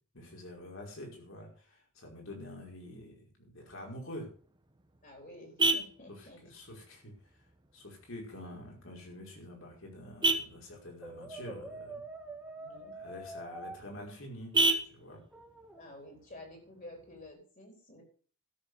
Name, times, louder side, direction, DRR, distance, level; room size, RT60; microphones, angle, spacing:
voice 1, 0.1-4.3 6.1-7.1 7.7-12.0 12.9-15.2, left 1 dB, 65° left, 0 dB, 5.4 m, -47 dB
Vehicle horn car horn honking, 4.3-17.3, right 2 dB, 20° right, 1.2 m, -36 dB
voice 2, 5.0-6.4 12.6-13.0 15.7-18.0, left 1 dB, 40° left, 3 dB, 4.1 m, -51 dB
Brass instrument, 11.0-13.8 15.3-15.9, right 2 dB, 5° right, 1.9 m, -45 dB
13.0 x 7.3 x 7.0 m, 0.43 s
head